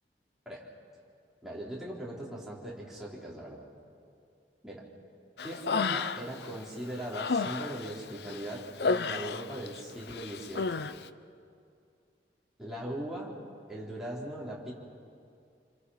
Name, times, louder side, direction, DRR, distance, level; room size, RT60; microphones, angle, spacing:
voice 1, 1.4-3.7 4.6-4.8 5.4-10.9 12.6-13.3 13.7-14.7, right 1 dB, 5° right, -5 dB, 3.9 m, -39 dB
Human voice, 5.4-6.5 6.8-9.8 10.1-10.9, left 4 dB, 65° left, 0.6 m, -32 dB
27.5 x 23.5 x 5.7 m, 2.4 s
head